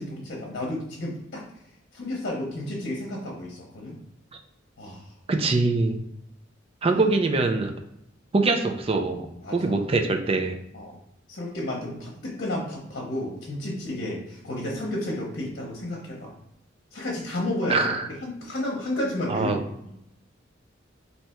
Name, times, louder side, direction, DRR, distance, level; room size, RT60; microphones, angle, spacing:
voice 1, 0.0-1.4 1.9-4.0 4.8-5.1 9.4-9.8 10.7-11.0 11.3-16.3 16.9-17.9 18.2-19.9, left 1 dB, 55° left, -2 dB, 0.9 m, -32 dB
voice 2, 5.3-6.0 6.8-7.7 8.3-9.3 9.5-10.6 17.7-18.1 19.3-19.6, right 3 dB, 30° right, 5 dB, 0.4 m, -23 dB
3.4 x 2.9 x 4.3 m, 0.79 s
head